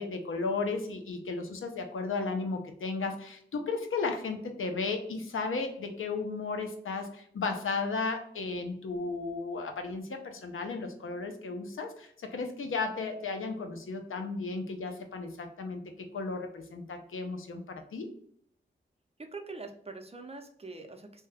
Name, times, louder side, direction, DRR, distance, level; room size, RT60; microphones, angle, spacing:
voice 1, 0.0-18.1, left 4 dB, 85° left, 5 dB, 0.6 m, -34 dB
voice 2, 19.2-21.3, right 3 dB, 30° right, 5 dB, 0.6 m, -44 dB
2.8 x 2.2 x 3.4 m, 0.65 s
cardioid pair, 55°, 21 cm